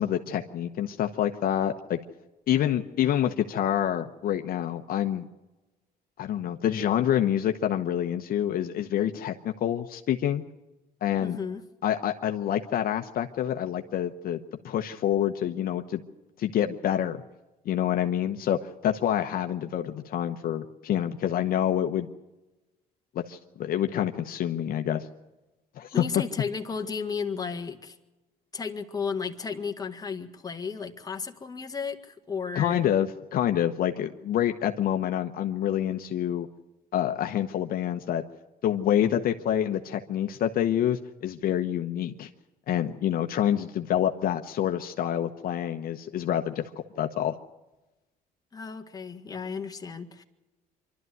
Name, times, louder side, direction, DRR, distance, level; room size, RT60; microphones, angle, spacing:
voice 1, 0.0-2.0 2.5-5.3 6.2-10.4 11.0-11.4 11.8-14.4 14.6-16.0 16.4-17.2 17.6-22.1 23.1-25.1 25.8-26.0 32.5-36.5 36.9-38.2 38.6-42.3 42.7-46.7 47.0-47.3, left 10 dB, 60° left, 6 dB, 1.0 m, -27 dB
voice 2, 11.2-11.6 25.9-28.0 28.5-32.8 48.5-50.2, left 5 dB, 20° left, 4 dB, 1.8 m, -34 dB
25.0 x 12.5 x 9.3 m, 1.1 s
cardioid pair, 110°, 17 cm